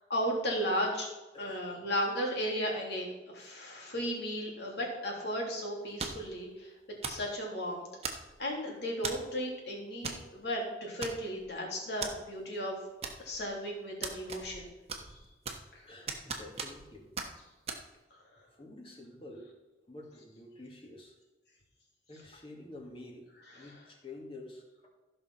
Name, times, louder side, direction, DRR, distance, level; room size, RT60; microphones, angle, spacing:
voice 1, 0.1-1.1 1.4-6.7 7.0-7.9 8.4-12.8 13.2-14.7 15.0-15.2 15.7-15.8 18.1-18.2 23.5-23.7, equal, 70° left, -2 dB, 3.4 m, -35 dB
voice 2, 1.3-1.6 3.4-3.5 15.0-15.1 15.8-17.1 18.6-19.5 19.9-21.2 22.1-24.9, left 2 dB, 30° left, 0 dB, 2.1 m, -49 dB
sound 1, 6.0-6.3 7.0-7.3 8.0-8.5 9.0-9.3 10.0-10.2 10.5-10.6 11.0-11.5 12.0-12.1 13.0-13.5 14.0-14.6 14.9-15.7 16.1-16.9 17.2-17.3 17.7-17.8, right 5 dB, 35° right, 1.1 m, -38 dB
14.5 x 5.8 x 5.7 m, 1.1 s
head